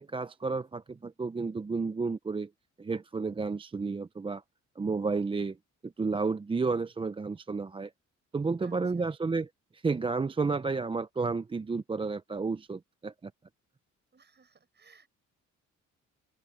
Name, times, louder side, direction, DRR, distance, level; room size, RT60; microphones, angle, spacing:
voice 1, 0.0-2.5 2.8-4.4 4.8-5.6 5.8-7.9 8.3-9.5 9.7-13.3, right 4 dB, 20° right, 0.5 m, -31 dB
voice 2, 8.6-9.2 14.1-15.1, right 5 dB, 35° right, 6.3 m, -60 dB
open air
cardioid pair, 90°, 30 cm